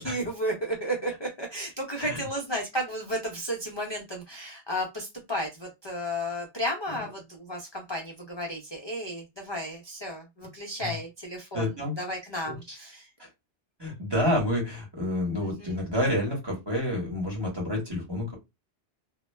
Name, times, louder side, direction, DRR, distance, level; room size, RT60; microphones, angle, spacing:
voice 1, 0.0-13.1 15.4-15.8, equal, 40° left, 1 dB, 0.4 m, -33 dB
voice 2, 11.5-11.9 12.4-12.8 13.2-13.3 13.8-18.3, left 1 dB, 25° right, -1 dB, 0.9 m, -29 dB
2.1 x 2.0 x 3.2 m, 0.23 s
omnidirectional pair, 1.1 m